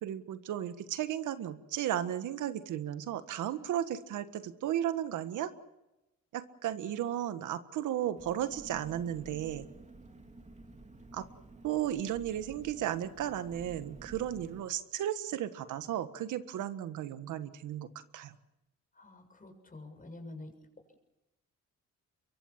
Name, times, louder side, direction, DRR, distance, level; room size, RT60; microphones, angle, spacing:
voice 1, 0.0-5.5 6.3-9.7 11.1-11.2 11.6-17.9 18.1-18.3, right 11 dB, 80° right, 11 dB, 1.6 m, -34 dB
Engine, 8.2-14.6, right 3 dB, 25° right, 3.4 m, -52 dB
voice 2, 19.0-20.5, left 2 dB, 25° left, 5 dB, 7.1 m, -47 dB
23.5 x 23.5 x 7.4 m, 0.96 s
cardioid pair, 90°, 30 cm